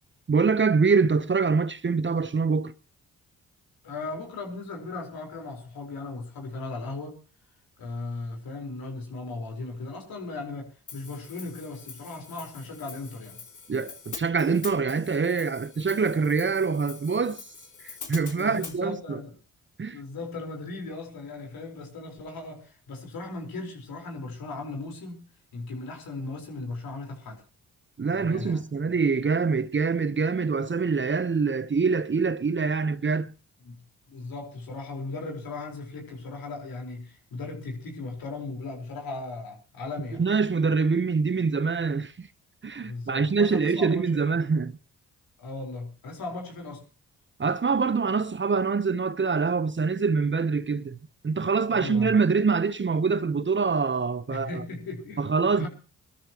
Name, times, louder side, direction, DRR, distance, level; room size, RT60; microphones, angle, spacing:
voice 1, 0.3-2.7 13.7-17.4 18.1-19.2 19.8-20.0 28.0-33.3 40.2-42.3 42.6-44.7 47.4-51.0 51.2-54.6 55.2-55.7, right 5 dB, 30° right, 1.0 m, -25 dB
voice 2, 3.8-7.2 7.8-13.4 18.3-19.3 19.9-25.3 25.5-27.4 28.1-28.6 33.6-33.8 34.1-40.2 42.8-44.3 45.4-46.8 51.7-52.1 54.3-55.3 55.6-55.7, left 3 dB, 70° left, 4.5 m, -37 dB
Hi-hat, 10.9-18.8, left 5 dB, 55° left, 2.8 m, -44 dB
24.0 x 13.0 x 3.0 m
supercardioid pair, 50°, 36 cm